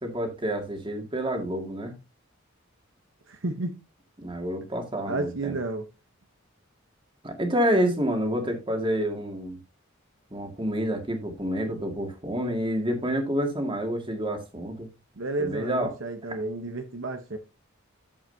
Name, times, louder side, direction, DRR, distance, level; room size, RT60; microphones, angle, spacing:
voice 1, 0.0-1.9 4.2-5.6 7.2-9.6 10.3-14.9 15.4-15.9, equal, 25° right, 2.2 m, -28 dB
voice 2, 3.3-3.8 5.1-5.9 15.2-17.4, right 2 dB, 65° right, 1.0 m, -31 dB
11.5 x 7.8 x 2.8 m
head